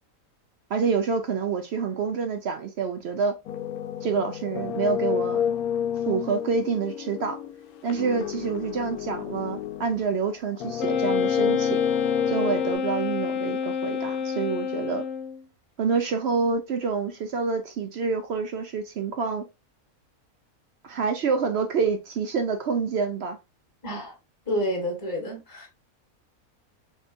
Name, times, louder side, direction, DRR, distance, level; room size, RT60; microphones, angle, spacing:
voice 1, 0.7-3.4 4.0-5.4 6.1-7.4 7.8-11.8 12.3-15.0 15.8-19.4 20.8-23.4, right 5 dB, 65° right, 0.6 m, -27 dB
sound 1, 3.5-10.2 10.5-12.8, left 9 dB, 85° left, 1.1 m, -29 dB
Wind instrument woodwind instrument, 10.8-15.4, left 6 dB, 70° left, 1.0 m, -29 dB
voice 2, 23.8-24.1 24.5-25.7, equal, 15° left, 1.2 m, -29 dB
3.9 x 3.7 x 2.5 m
omnidirectional pair, 1.5 m